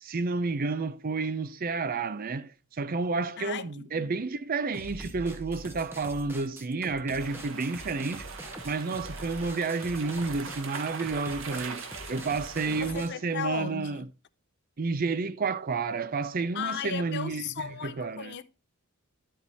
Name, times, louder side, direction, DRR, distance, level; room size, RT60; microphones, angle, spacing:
voice 1, 0.0-8.3 8.6-14.1 14.8-18.3, right 4 dB, 40° right, 0.5 m, -31 dB
voice 2, 3.4-4.2 12.7-14.0 16.5-18.4, left 7 dB, 50° left, 0.5 m, -36 dB
sound 1, 4.7-13.1, right 1 dB, 10° right, 0.8 m, -44 dB
sound 2, 7.2-12.9, right 4 dB, 60° right, 1.1 m, -41 dB
12.0 x 4.5 x 4.0 m
head